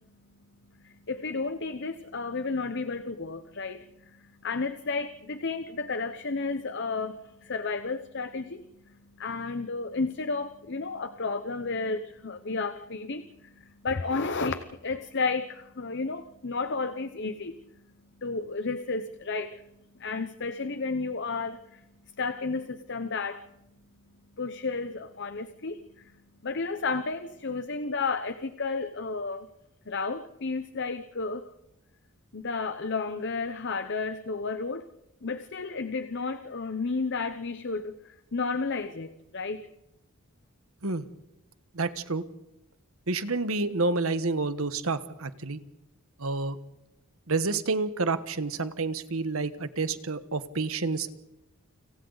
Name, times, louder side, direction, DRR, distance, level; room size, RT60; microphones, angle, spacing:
voice 1, 0.8-3.8 4.4-8.6 9.2-13.5 13.8-17.5 18.2-19.6 20.0-21.8 22.2-23.5 24.4-25.8 26.4-29.5 29.9-31.5 32.3-34.8 35.2-39.6, left 4 dB, 50° left, 10 dB, 0.9 m, -32 dB
voice 2, 41.7-42.2 43.1-45.6 46.2-46.6 47.3-51.2, right 3 dB, 70° right, 12 dB, 1.2 m, -29 dB
29.5 x 26.0 x 4.0 m, 0.89 s
head